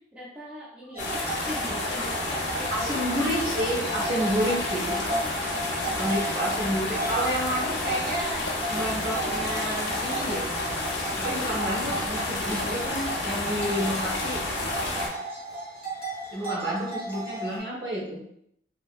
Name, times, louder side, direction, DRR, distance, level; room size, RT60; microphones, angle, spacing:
voice 1, 0.1-2.9, equal, 5° right, -6 dB, 0.4 m, -41 dB
sound 1, 0.9-17.6, right 1 dB, 30° right, 0.8 m, -35 dB
sound 2, 1.0-15.1, left 2 dB, 65° left, 0.6 m, -30 dB
voice 2, 2.7-4.9 6.0-10.4 11.2-14.4 16.3-18.2, equal, 60° right, -5 dB, 1.1 m, -30 dB
2.7 x 2.7 x 2.4 m, 0.73 s
head